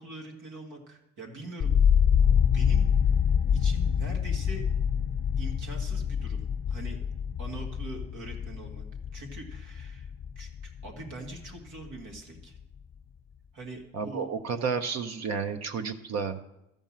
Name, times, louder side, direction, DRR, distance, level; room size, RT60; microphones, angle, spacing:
voice 1, 0.0-1.8 2.3-2.9 3.5-4.6 5.4-6.4 6.7-7.0 7.4-8.9 9.1-10.1 10.4-12.6 13.5-14.3, right 2 dB, 90° right, 1 dB, 2.0 m, -43 dB
sound 1, 1.6-11.6 11.9-12.6, left 7 dB, 40° left, 0.5 m, -26 dB
voice 2, 13.9-16.4, right 5 dB, 60° right, 7 dB, 0.8 m, -31 dB
13.0 x 5.3 x 7.3 m, 0.86 s
cardioid pair, 90°, 30 cm